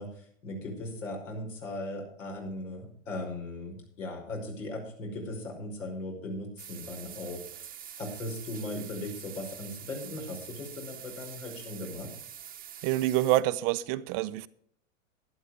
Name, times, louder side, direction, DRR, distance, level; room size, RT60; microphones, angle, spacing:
voice 1, 0.0-12.1, left 2 dB, 75° left, 5.2 m, -38 dB
sound 1, 6.6-13.4, right 9 dB, 20° right, 1.0 m, -45 dB
voice 2, 12.8-14.5, right 15 dB, 45° right, 0.6 m, -27 dB
12.0 x 10.5 x 4.9 m
hypercardioid pair, 100°, 39 cm